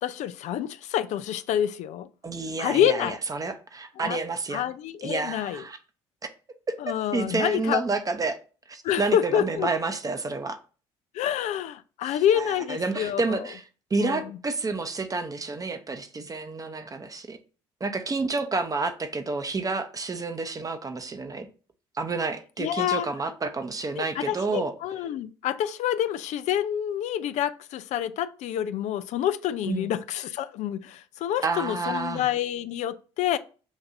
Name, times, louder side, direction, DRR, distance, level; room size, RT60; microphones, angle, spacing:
voice 1, 0.0-2.1 2.6-3.2 4.0-4.2 4.5-5.6 6.8-7.8 8.8-9.7 11.1-13.4 14.0-14.2 22.6-23.1 24.0-33.4, left 10 dB, 60° left, 0.4 m, -27 dB
voice 2, 2.2-4.6 5.0-5.8 6.9-8.4 8.7-10.6 12.1-13.6 13.9-17.4 17.8-21.5 21.9-24.7 29.7-29.9 31.4-32.3, right 3 dB, 25° right, 0.8 m, -29 dB
7.0 x 2.6 x 2.5 m
hypercardioid pair, 55°, 14 cm